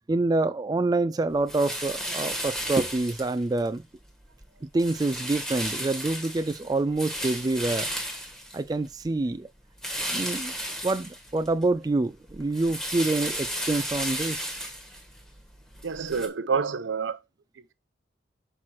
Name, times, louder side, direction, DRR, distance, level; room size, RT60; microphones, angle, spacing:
voice 1, 0.1-3.8 4.7-7.9 8.5-9.5 10.1-10.5 10.8-14.5, right 2 dB, 20° right, 0.3 m, -26 dB
sound 1, 1.5-3.7 4.1-4.4 4.8-9.1 9.8-11.6 12.0-16.3, equal, ahead, 1.5 m, -34 dB
voice 2, 15.8-17.2, right 5 dB, 80° right, 0.6 m, -28 dB
6.1 x 4.6 x 5.9 m
head